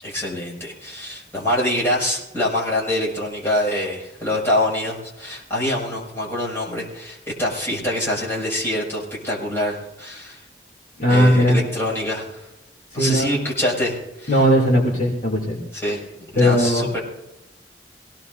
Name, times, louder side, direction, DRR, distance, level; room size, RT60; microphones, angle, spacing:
voice 1, 0.0-10.4 11.1-12.4 12.9-14.4 15.7-17.0, left 1 dB, 15° left, -5 dB, 6.2 m, -25 dB
voice 2, 11.0-11.6 12.9-13.4 14.3-15.6 16.3-16.9, equal, 45° left, -3 dB, 2.9 m, -17 dB
23.5 x 18.0 x 2.7 m, 0.94 s
head